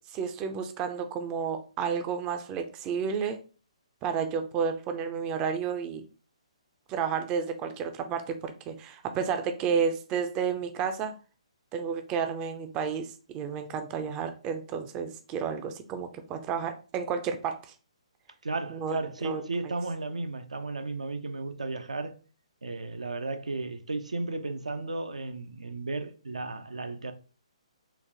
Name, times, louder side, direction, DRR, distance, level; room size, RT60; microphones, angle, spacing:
voice 1, 0.1-3.4 4.0-6.0 6.9-11.2 11.7-17.7 18.7-19.0 19.2-19.4, right 6 dB, 20° right, 0.3 m, -31 dB
voice 2, 18.4-22.2 22.6-27.1, right 3 dB, 85° right, 0.5 m, -34 dB
3.8 x 2.4 x 2.8 m
hypercardioid pair, 140°, 4 cm